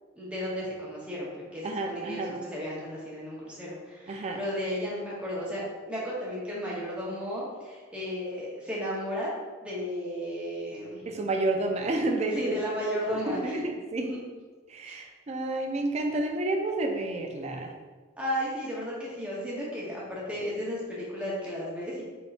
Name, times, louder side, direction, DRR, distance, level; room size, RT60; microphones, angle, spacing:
voice 1, 0.2-2.2 2.5-9.3 9.6-11.0 12.3-13.7 14.0-14.2 14.8-15.0 18.2-22.0, equal, 5° right, -6 dB, 0.8 m, -34 dB
voice 2, 1.6-2.4 4.1-4.4 11.1-12.6 13.4-14.1 14.7-17.7, right 2 dB, 35° right, 3 dB, 0.4 m, -30 dB
3.9 x 3.4 x 2.5 m, 1.4 s
head